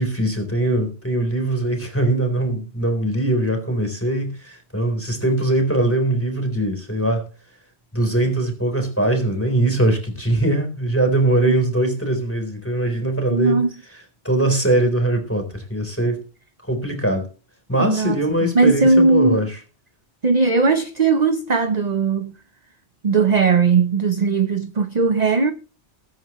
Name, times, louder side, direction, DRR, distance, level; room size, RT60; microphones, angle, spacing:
voice 1, 0.0-7.3 7.9-13.6 14.2-16.2 16.7-17.3 17.7-19.5, right 1 dB, 10° left, 4.0 m, -21 dB
voice 2, 13.3-13.7 17.8-18.2 18.5-19.4 20.2-22.3 23.0-25.5, right 4 dB, 40° right, 0.9 m, -18 dB
21.0 x 9.1 x 3.1 m
omnidirectional pair, 1.2 m